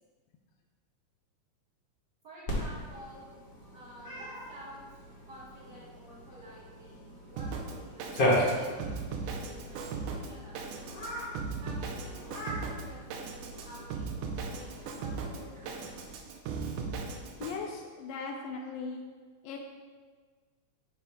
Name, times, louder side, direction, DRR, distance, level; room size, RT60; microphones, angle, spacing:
voice 1, 2.2-3.2 3.7-10.8 11.6-15.9, right 1 dB, 55° right, -10 dB, 1.2 m, -51 dB
Cat, 2.5-16.1, equal, 45° left, 1.2 m, -37 dB
Drum kit, 7.4-17.6, right 4 dB, 85° right, 2.1 m, -38 dB
voice 2, 17.4-19.0 19.4-19.6, left 4 dB, 90° left, 2 dB, 1.4 m, -38 dB
10.0 x 5.6 x 2.2 m, 1.5 s
omnidirectional pair, 3.5 m